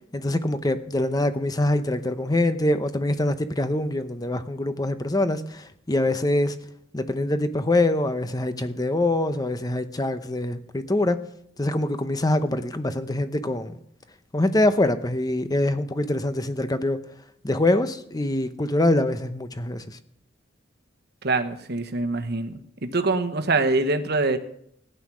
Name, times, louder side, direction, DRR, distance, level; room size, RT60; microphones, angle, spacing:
voice 1, 0.1-6.6 6.9-11.2 11.6-13.8 14.3-17.0 17.4-20.0, left 1 dB, 20° left, 0.9 m, -24 dB
voice 2, 21.2-24.4, right 3 dB, 55° right, 1.2 m, -24 dB
15.5 x 10.5 x 6.2 m
head